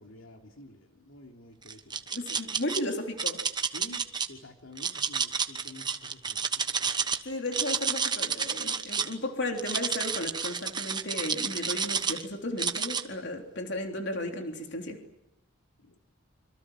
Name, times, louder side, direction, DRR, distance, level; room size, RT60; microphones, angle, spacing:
voice 1, 0.0-2.0 3.7-4.0 4.3-7.1 15.8-16.0, left 1 dB, 85° left, 2 dB, 3.0 m, -50 dB
sound 1, 1.7-2.8 3.2-4.3 4.8-7.2 7.5-9.1 9.6-12.2 12.6-13.0, right 6 dB, 20° right, 1.2 m, -30 dB
voice 2, 2.1-3.4 7.2-15.1, left 1 dB, 55° left, 3 dB, 3.5 m, -34 dB
26.5 x 26.0 x 7.5 m, 0.87 s
head